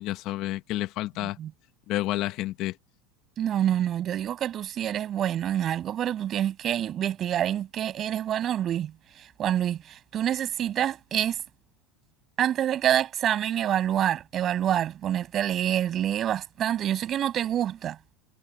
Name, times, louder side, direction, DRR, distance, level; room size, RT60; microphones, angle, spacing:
voice 1, 0.0-1.4 1.9-2.7, left 16 dB, 55° left, 1.5 m, -30 dB
voice 2, 1.2-1.5 3.4-8.9 9.2-11.4 12.4-18.1, right 10 dB, 40° right, 7.2 m, -27 dB
supercardioid pair, 110°, 0 cm